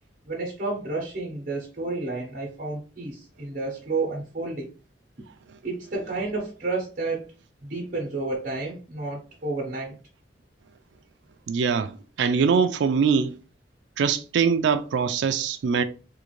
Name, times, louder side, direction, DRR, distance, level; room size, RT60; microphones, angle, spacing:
voice 1, 0.3-4.7 5.6-7.3 7.6-10.0, right 3 dB, 50° right, 0.9 m, -31 dB
voice 2, 11.5-13.3 14.0-15.8, right 6 dB, 80° right, 0.3 m, -23 dB
3.6 x 2.4 x 3.1 m
head